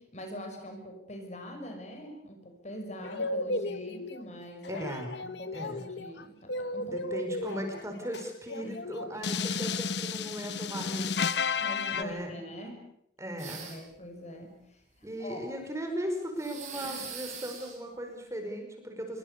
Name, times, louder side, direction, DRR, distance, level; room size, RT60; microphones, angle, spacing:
voice 1, 0.0-4.8 5.2-7.0 7.9-8.0 11.6-12.9 13.6-15.4, equal, 40° left, 5 dB, 5.9 m, -43 dB
sound 1, 3.0-4.2 4.6-12.0, left 4 dB, 75° left, 1.1 m, -33 dB
voice 2, 4.7-5.2 5.5-5.8 6.8-11.3 11.9-12.4 13.2-13.8 15.0-19.2, equal, 15° right, 4 dB, 5.3 m, -37 dB
sound 2, 13.4-14.0 16.4-17.8, right 6 dB, 45° right, 7.4 m, -41 dB
26.0 x 23.5 x 6.9 m, 0.75 s
head